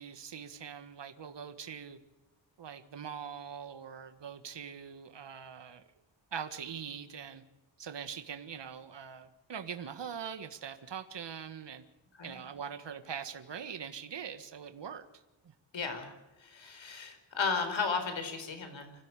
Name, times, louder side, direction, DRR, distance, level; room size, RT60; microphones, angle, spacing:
voice 1, 0.0-2.0 2.6-5.8 6.3-7.4 7.8-11.8 12.2-15.0 15.4-15.5, right 7 dB, 65° right, 9 dB, 1.7 m, -42 dB
voice 2, 15.7-16.1 16.4-18.9, left 5 dB, 80° left, 7 dB, 4.7 m, -34 dB
26.0 x 16.0 x 8.4 m, 1.0 s
wide cardioid pair, 135°, 45 cm